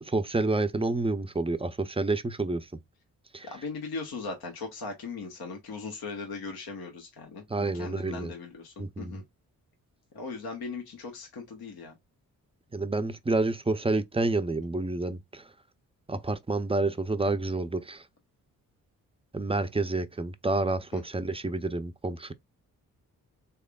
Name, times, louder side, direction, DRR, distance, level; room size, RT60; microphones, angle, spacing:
voice 1, 0.0-2.7 3.3-3.5 7.5-8.3 8.8-9.2 12.7-15.5 16.1-18.1 19.3-22.3, right 2 dB, 15° right, 0.5 m, -29 dB
voice 2, 3.4-9.2 10.1-12.0 20.9-21.0, left 4 dB, 70° left, 1.1 m, -39 dB
3.4 x 3.4 x 2.3 m
supercardioid pair, 40°, 39 cm